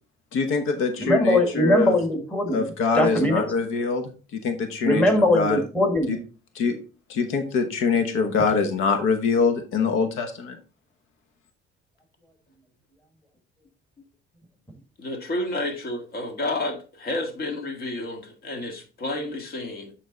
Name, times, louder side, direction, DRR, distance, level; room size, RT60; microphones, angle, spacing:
voice 1, 0.3-1.9 2.5-4.1 4.4-5.6 6.1-6.2 6.6-6.8 7.1-10.6, left 5 dB, 85° left, 7 dB, 1.1 m, -24 dB
voice 2, 1.0-2.7 2.9-3.4 4.8-6.2, left 1 dB, 5° left, 3 dB, 1.6 m, -21 dB
voice 3, 15.0-19.9, left 2 dB, 50° left, 5 dB, 1.8 m, -30 dB
8.8 x 3.9 x 3.9 m, 0.37 s
cardioid pair, 125°, 20 cm